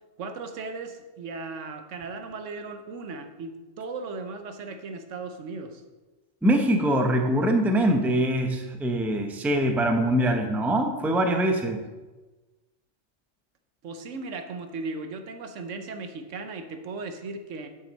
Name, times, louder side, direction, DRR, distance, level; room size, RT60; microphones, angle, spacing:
voice 1, 0.2-5.8 13.8-17.7, right 3 dB, 90° right, 7 dB, 1.2 m, -37 dB
voice 2, 6.4-11.8, right 1 dB, ahead, 5 dB, 0.5 m, -23 dB
9.3 x 6.9 x 4.0 m, 1.2 s
omnidirectional pair, 1.2 m